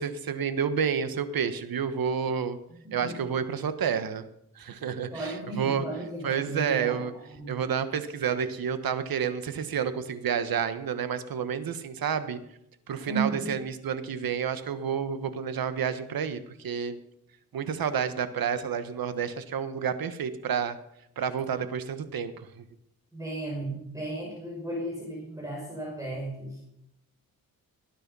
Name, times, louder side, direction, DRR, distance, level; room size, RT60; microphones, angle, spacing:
voice 1, 0.0-2.6 2.9-4.2 4.5-5.3 5.6-5.8 6.2-7.1 7.5-12.4 12.9-17.0 17.5-20.8 21.2-22.6, right 7 dB, 75° right, 11 dB, 1.4 m, -30 dB
voice 2, 2.7-3.2 5.1-7.6 13.0-13.6 23.1-26.6, right 2 dB, 10° right, -2 dB, 5.2 m, -35 dB
19.0 x 10.0 x 5.5 m, 0.80 s
cardioid pair, 95°, 35 cm